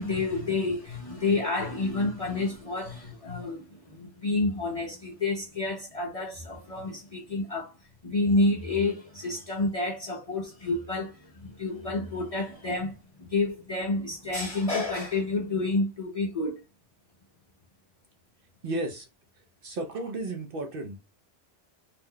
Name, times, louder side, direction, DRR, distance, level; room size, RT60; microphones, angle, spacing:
voice 1, 0.0-7.7 8.0-16.6, left 2 dB, 40° left, 0.6 m, -29 dB
voice 2, 18.6-19.1 19.6-21.1, right 2 dB, 60° right, 0.6 m, -33 dB
2.8 x 2.1 x 3.6 m
omnidirectional pair, 1.2 m